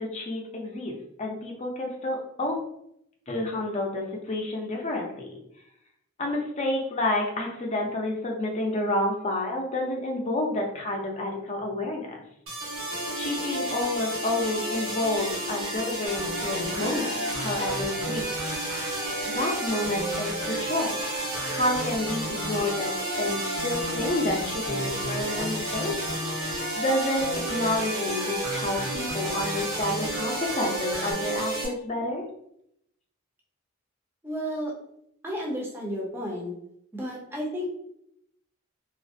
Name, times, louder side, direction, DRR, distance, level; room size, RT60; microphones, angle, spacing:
voice 1, 0.0-2.6 3.3-5.4 6.2-12.2 13.2-18.5 19.3-21.0 21.2-22.9 23.2-26.0 26.8-32.2, left 1 dB, 35° left, 0 dB, 0.5 m, -29 dB
sound 1, 12.5-31.7, right 1 dB, 90° right, 1.0 m, -32 dB
sound 2, 16.1-31.1, equal, 55° right, 1.0 m, -36 dB
voice 2, 34.2-34.7 35.2-36.5 36.9-37.7, equal, 10° right, -3 dB, 0.6 m, -32 dB
2.4 x 2.0 x 2.5 m, 0.74 s
head